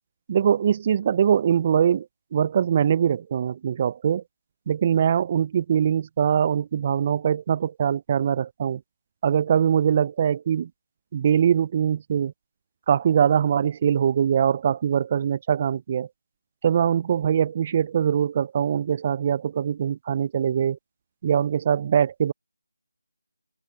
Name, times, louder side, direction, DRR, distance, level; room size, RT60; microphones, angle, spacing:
voice 1, 0.3-2.1 2.3-4.2 4.7-8.8 9.2-10.7 11.1-12.3 12.9-16.1 16.6-20.8 21.2-22.3, right 8 dB, 30° right, 0.5 m, -22 dB
figure-of-eight pair, 160°, 0 cm